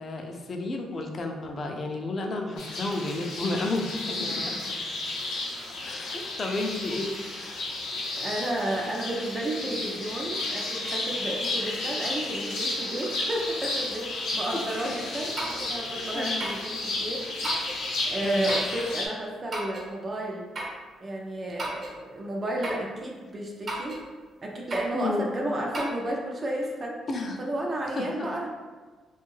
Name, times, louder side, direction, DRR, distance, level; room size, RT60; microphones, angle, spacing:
voice 1, 0.0-4.6 5.8-7.6 14.5-14.6 16.1-16.4 18.2-18.9 24.9-25.4 27.1-27.4 27.9-28.1, left 2 dB, 45° left, 2 dB, 0.4 m, -32 dB
sound 1, 2.6-19.1, left 2 dB, 85° left, 0.6 m, -32 dB
voice 2, 4.2-4.6 8.2-17.7 18.1-20.4 21.0-24.0 24.4-27.0 27.4-28.5, right 1 dB, 35° right, -1 dB, 0.4 m, -32 dB
sound 2, 15.4-15.7 16.4-16.7 17.4-17.8 18.5-18.7 19.5-19.9 20.6-20.8 21.6-22.0 22.6-22.9 23.7-24.0 24.7-25.0 25.7-25.9, right 2 dB, 50° right, 1.0 m, -34 dB
2.6 x 2.3 x 3.1 m, 1.4 s
cardioid pair, 90°, 0 cm